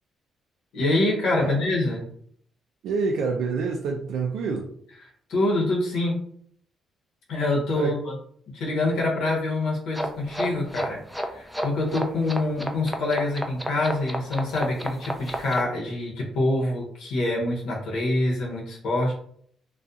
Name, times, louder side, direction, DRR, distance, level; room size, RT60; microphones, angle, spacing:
voice 1, 0.7-2.0 5.3-6.2 7.3-8.2 8.5-19.1, left 2 dB, 85° left, -3 dB, 0.9 m, -25 dB
voice 2, 1.3-1.7 2.8-4.7 7.7-7.9, right 4 dB, 85° right, 0 dB, 0.3 m, -27 dB
sound 1, 9.9-15.6, equal, ahead, 0.4 m, -31 dB
2.6 x 2.3 x 2.3 m, 0.62 s
cardioid pair, 90°, 0 cm